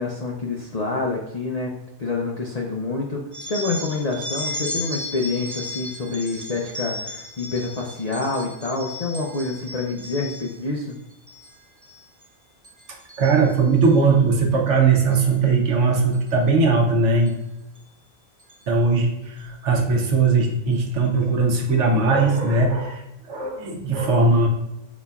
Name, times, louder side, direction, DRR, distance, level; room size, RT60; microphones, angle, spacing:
voice 1, 0.0-1.7 2.0-3.2 3.5-11.0, left 3 dB, 60° left, -1 dB, 0.4 m, -27 dB
sound 1, 3.3-10.6 11.1-11.5 11.8-12.3 12.6-14.0 15.0-15.2 16.1-16.3 17.3-17.4 17.8-17.9 18.4-18.6, left 1 dB, 20° right, 0.5 m, -35 dB
voice 2, 13.2-17.3 18.7-24.5, right 4 dB, 60° right, 1 dB, 1.1 m, -19 dB
5.4 x 4.1 x 2.3 m, 0.89 s
omnidirectional pair, 1.5 m